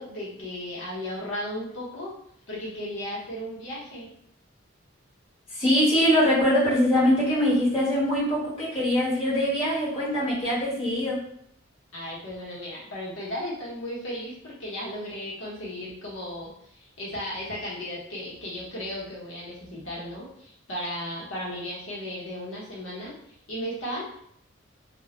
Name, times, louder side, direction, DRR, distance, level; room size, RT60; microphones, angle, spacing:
voice 1, 0.0-2.1 2.5-4.1 11.9-24.0, equal, 80° left, -6 dB, 0.8 m, -35 dB
voice 2, 5.5-11.3, equal, 25° left, -9 dB, 0.9 m, -23 dB
2.2 x 2.0 x 2.8 m, 0.67 s
head